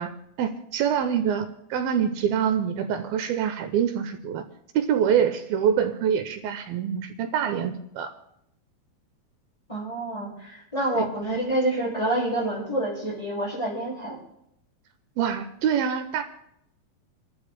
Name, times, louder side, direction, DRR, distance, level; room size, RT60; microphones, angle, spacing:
voice 1, 0.0-4.4 4.7-8.1 10.9-11.1 15.2-16.2, right 8 dB, 80° right, 7 dB, 2.5 m, -25 dB
voice 2, 9.7-14.2, right 1 dB, 10° left, -6 dB, 6.4 m, -27 dB
30.0 x 12.5 x 2.2 m, 0.78 s
omnidirectional pair, 4.4 m